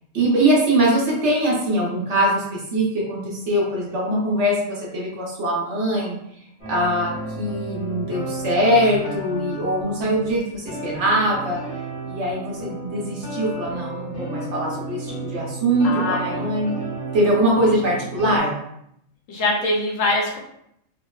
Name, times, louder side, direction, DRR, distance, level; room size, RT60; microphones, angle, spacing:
voice 1, 0.1-6.1 6.7-7.1 7.4-11.6 12.0-16.7 17.1-18.5, right 1 dB, 65° right, -4 dB, 1.0 m, -22 dB
sound 1, 6.6-10.3 10.7-18.4, right 1 dB, 45° left, 0.9 m, -32 dB
voice 2, 15.8-16.5 19.3-20.4, left 2 dB, 75° left, -2 dB, 0.9 m, -23 dB
2.8 x 2.0 x 2.2 m, 0.75 s
omnidirectional pair, 1.4 m